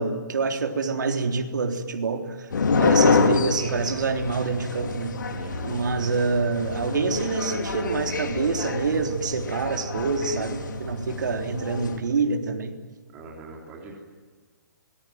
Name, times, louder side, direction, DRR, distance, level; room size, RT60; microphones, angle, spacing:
voice 1, 0.0-2.5 2.8-5.2 5.6-12.8, right 4 dB, 65° right, 4 dB, 3.6 m, -26 dB
sound 1, 2.5-12.0, left 4 dB, 65° left, 3.7 m, -27 dB
voice 2, 5.3-5.7 11.9-12.1 13.1-13.9, right 4 dB, 15° right, -1 dB, 3.3 m, -43 dB
25.5 x 20.0 x 9.4 m, 1.5 s
hypercardioid pair, 170°, 11 cm